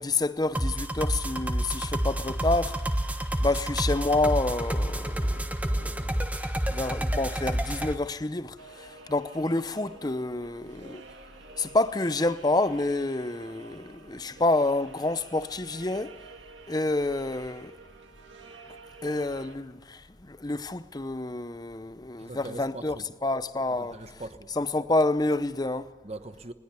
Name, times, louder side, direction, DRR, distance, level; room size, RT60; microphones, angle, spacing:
voice 1, 0.0-2.8 3.4-11.0 11.6-16.1 16.7-17.7 19.0-20.0 20.3-23.0 23.2-24.0 24.6-25.9, left 2 dB, 20° left, 0.7 m, -28 dB
sound 1, 0.5-7.9, right 1 dB, 10° right, 1.2 m, -29 dB
sound 2, 8.6-19.6, right 3 dB, 80° right, 2.2 m, -49 dB
voice 2, 22.2-23.0 23.8-24.5 26.0-26.5, right 2 dB, 35° right, 1.1 m, -41 dB
21.0 x 20.5 x 7.0 m
head